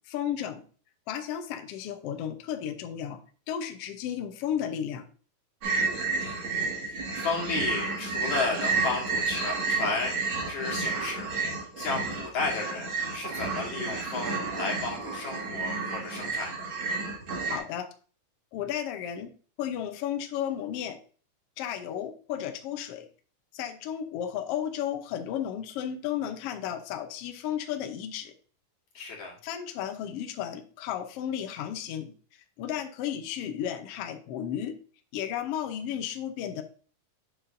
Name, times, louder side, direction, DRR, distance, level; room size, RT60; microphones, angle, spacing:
voice 1, 0.1-0.6 1.1-3.2 3.5-5.1 17.5-17.9 18.5-19.3 19.6-21.0 21.6-23.1 23.5-28.3 29.4-32.1 32.6-34.8 35.1-36.6, left 9 dB, 80° left, 6 dB, 1.3 m, -33 dB
sound 1, 5.6-17.6, right 4 dB, 40° right, 2.5 m, -31 dB
voice 2, 6.2-6.5 6.9-10.2 10.5-11.3 11.8-16.7 28.9-29.3, left 4 dB, 65° left, -2 dB, 3.0 m, -33 dB
7.9 x 6.4 x 2.6 m, 0.40 s
omnidirectional pair, 3.8 m